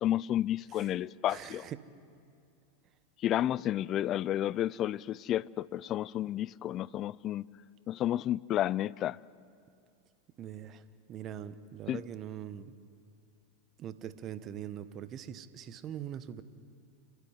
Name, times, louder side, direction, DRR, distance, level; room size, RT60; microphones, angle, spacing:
voice 1, 0.0-1.7 3.2-7.4 7.9-9.2 11.9-12.0, left 12 dB, 40° left, 0.4 m, -31 dB
voice 2, 1.3-1.8 10.4-10.8 11.1-12.8 13.8-16.4, right 10 dB, 40° right, 1.2 m, -42 dB
27.5 x 12.0 x 9.9 m
hypercardioid pair, 95°, 0 cm